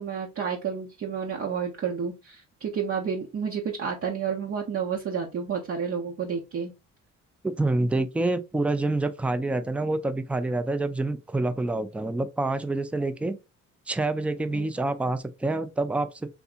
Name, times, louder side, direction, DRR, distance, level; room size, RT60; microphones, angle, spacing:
voice 1, 0.0-6.7 14.5-14.7, right 6 dB, 50° right, 0.8 m, -30 dB
voice 2, 7.4-13.4 13.9-16.3, right 2 dB, 5° right, 0.4 m, -27 dB
3.6 x 2.7 x 2.4 m
cardioid pair, 90°, 30 cm